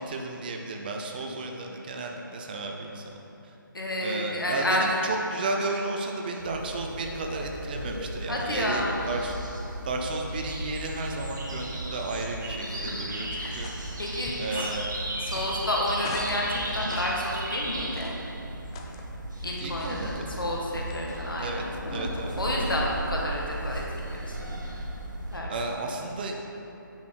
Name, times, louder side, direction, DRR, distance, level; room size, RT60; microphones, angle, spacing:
voice 1, 0.0-3.2 3.4-3.5 4.0-9.4 9.8-13.9 14.4-14.9 15.3-15.5 19.6-20.4 21.4-22.3 22.6-22.7 25.5-26.4, right 2 dB, 25° right, 2 dB, 0.6 m, -33 dB
voice 2, 3.7-4.8 8.3-9.0 12.6-13.6 14.0-14.7 15.2-18.1 19.4-21.7 22.4-24.6 25.3-25.5, left 1 dB, 75° left, -3 dB, 2.0 m, -31 dB
sound 1, 6.4-25.4, right 1 dB, 60° right, 1.5 m, -35 dB
sound 2, 13.1-21.5, left 4 dB, 15° left, 0.4 m, -44 dB
Thunder, 16.1-23.5, left 1 dB, 60° left, 1.6 m, -44 dB
9.3 x 6.1 x 4.6 m, 3.0 s
figure-of-eight pair, 150°, 11 cm